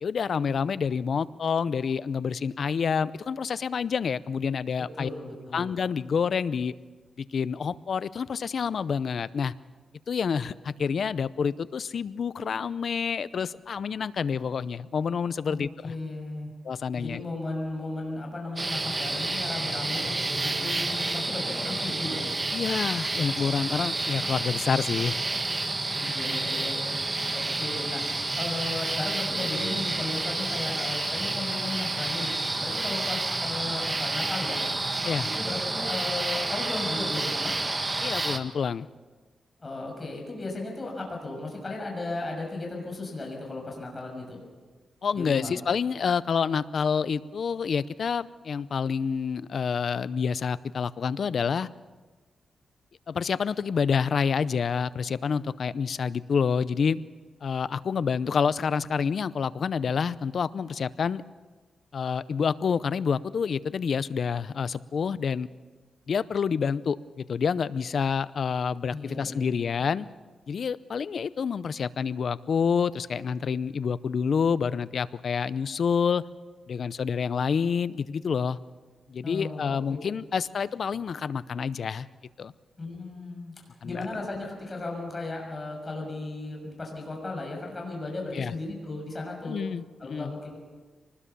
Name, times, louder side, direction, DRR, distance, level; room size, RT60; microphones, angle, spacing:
voice 1, 0.0-5.1 5.5-6.7 7.2-9.5 10.1-15.9 16.6-17.2 22.5-25.2 26.0-26.2 35.0-35.3 38.0-38.9 45.0-51.7 53.1-57.0 57.4-61.2 61.9-65.5 66.1-70.1 70.5-76.2 76.7-78.6 79.1-82.1 82.4-82.5 83.8-84.0 88.3-88.5 89.4-90.3, left 6 dB, 65° left, 17 dB, 0.6 m, -28 dB
voice 2, 5.0-5.7 15.5-16.5 16.9-22.2 25.9-26.9 27.3-28.0 28.4-32.3 32.6-34.6 35.2-37.5 39.6-44.4 45.1-45.5 68.9-69.8 79.2-80.0 82.8-83.5 83.8-89.6 90.0-90.6, left 2 dB, 30° left, 0 dB, 6.4 m, -35 dB
sound 1, 18.6-38.4, right 2 dB, 25° right, 1.7 m, -29 dB
24.5 x 20.0 x 6.9 m, 1.3 s
cardioid pair, 90°, 0 cm